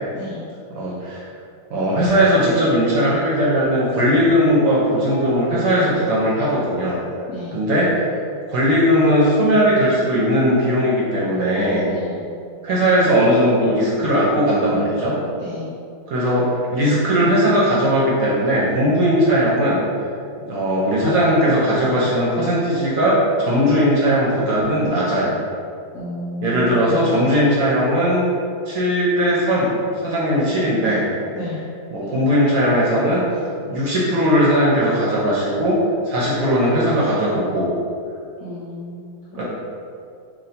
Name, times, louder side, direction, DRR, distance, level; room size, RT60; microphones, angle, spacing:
voice 1, 0.1-0.4 7.3-7.6 11.9-12.2 15.4-15.7 25.9-27.3 31.3-31.6 38.4-39.4, left 1 dB, 70° left, -7 dB, 0.8 m, -32 dB
voice 2, 0.7-1.3 1.7-7.0 7.5-8.1 8.5-11.8 12.6-15.2 16.1-19.8 20.5-25.4 26.4-28.2 28.7-29.7 30.0-31.0 31.9-33.2 33.6-35.8 36.1-37.7 39.3-39.4, equal, 65° right, -6 dB, 0.9 m, -18 dB
3.1 x 2.3 x 4.1 m, 2.5 s
omnidirectional pair, 1.9 m